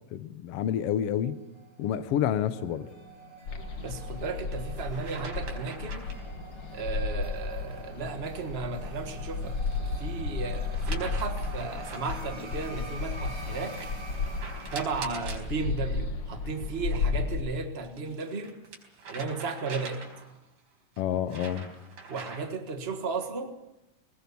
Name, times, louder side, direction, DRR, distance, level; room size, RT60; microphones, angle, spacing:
voice 1, 0.1-1.3 1.8-2.9 21.0-21.7, left 10 dB, 70° left, 12 dB, 1.5 m, -28 dB
sound 1, 1.2-15.9, right 2 dB, 20° right, 4.4 m, -47 dB
sound 2, 3.4-17.3, left 4 dB, 50° left, 2.4 m, -34 dB
sound 3, 3.7-4.0 4.7-6.3 9.1-10.0 10.7-12.4 13.7-15.5 17.6-20.4 20.9-22.6, right 4 dB, 70° right, 5.7 m, -44 dB
voice 2, 3.8-6.1 6.7-13.9 14.7-18.6 19.1-20.0 22.1-23.5, right 4 dB, 50° right, 6 dB, 0.7 m, -35 dB
21.5 x 20.5 x 7.0 m, 0.95 s
omnidirectional pair, 3.8 m